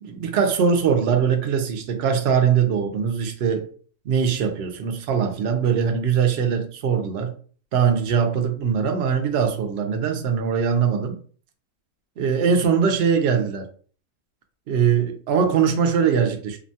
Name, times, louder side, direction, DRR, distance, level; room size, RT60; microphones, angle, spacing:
voice 1, 0.0-3.7 4.1-7.3 7.7-11.2 12.2-13.7 14.7-16.6, right 7 dB, 70° right, 0.6 m, -21 dB
2.8 x 2.1 x 2.6 m
omnidirectional pair, 1.5 m